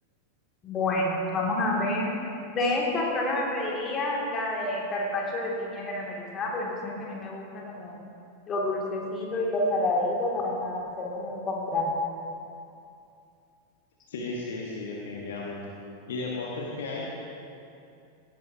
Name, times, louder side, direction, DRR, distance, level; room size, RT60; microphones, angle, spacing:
voice 1, 0.6-2.1 2.5-8.0 8.5-11.9, left 2 dB, 25° left, -2 dB, 2.4 m, -29 dB
voice 2, 14.1-15.6 16.1-17.1, left 3 dB, 60° left, -3 dB, 1.3 m, -34 dB
16.0 x 10.5 x 2.8 m, 2.6 s
figure-of-eight pair, 90°, 0 cm